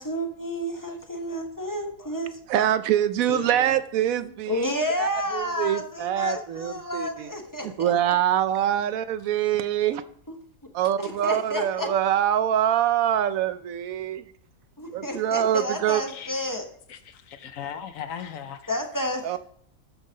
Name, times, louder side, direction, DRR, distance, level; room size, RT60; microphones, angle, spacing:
voice 1, 0.0-2.4 4.5-7.9 10.3-10.4 11.0-11.9 14.8-16.7 18.7-19.4, left 1 dB, 15° left, 0.8 m, -30 dB
voice 2, 2.5-4.7 5.0-7.3 7.6-10.0 10.7-14.2 14.9-16.0 19.2-19.4, right 11 dB, 75° right, 1.0 m, -24 dB
voice 3, 3.3-3.8 16.1-16.3 16.9-18.7, left 8 dB, 70° left, 1.1 m, -37 dB
12.0 x 5.5 x 3.8 m
omnidirectional pair, 1.5 m